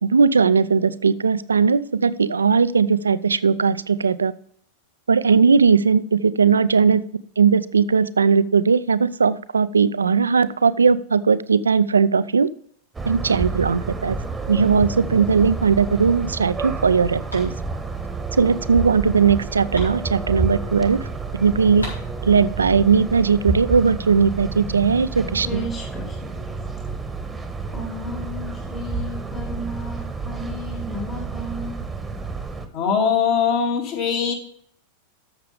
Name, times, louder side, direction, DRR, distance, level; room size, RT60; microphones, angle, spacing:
voice 1, 0.0-4.3 5.1-7.0 7.4-12.5 13.1-14.2 14.5-17.5 18.4-21.0 21.3-21.9 22.2-25.6, right 5 dB, 75° right, 0.4 m, -18 dB
sound 1, 12.9-32.7, right 4 dB, 10° right, 1.2 m, -30 dB
sound 2, 17.3-20.9 21.2-21.3 21.5-22.8, equal, 85° left, 4.1 m, -42 dB
voice 2, 25.3-26.4 27.7-31.8, left 1 dB, 20° left, 1.7 m, -34 dB
voice 3, 32.7-34.3, left 7 dB, 45° left, 2.5 m, -21 dB
13.0 x 6.7 x 3.4 m
figure-of-eight pair, 90°, 0 cm